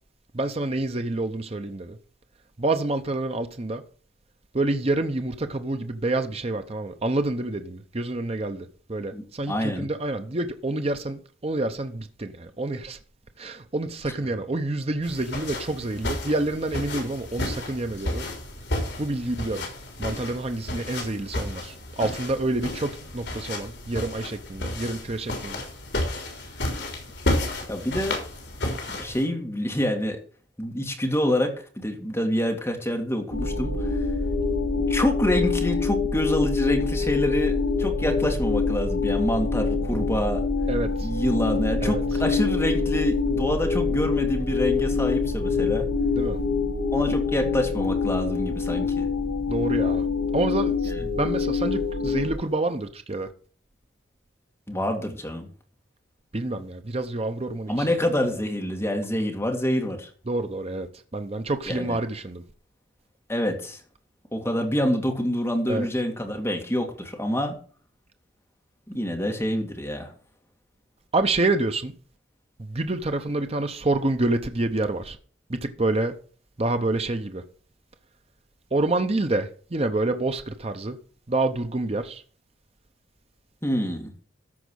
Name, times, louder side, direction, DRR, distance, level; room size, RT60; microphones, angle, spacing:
voice 1, 0.3-2.0 2.6-3.8 4.5-13.0 13.4-18.3 19.0-19.7 20.0-25.6 40.7-41.1 41.8-42.0 46.1-46.4 49.5-50.1 50.3-53.3 56.3-57.9 58.2-58.4 60.3-62.4 65.7-65.9 71.1-71.9 72.6-75.2 75.5-76.1 76.6-77.4 78.7-81.0 81.3-82.2, right 2 dB, 30° right, 0.7 m, -28 dB
voice 2, 9.1-9.9 27.7-28.2 28.9-30.2 30.6-34.0 34.9-40.4 41.0-45.9 46.9-49.1 50.9-51.0 54.7-55.5 57.7-60.1 61.7-61.9 63.3-63.8 64.3-67.6 68.9-70.1 83.6-84.1, equal, 15° left, 2.1 m, -27 dB
sound 1, 15.0-29.2, left 1 dB, 65° left, 3.7 m, -32 dB
sound 2, 33.3-52.3, left 4 dB, 80° left, 3.4 m, -25 dB
13.5 x 5.1 x 6.3 m
head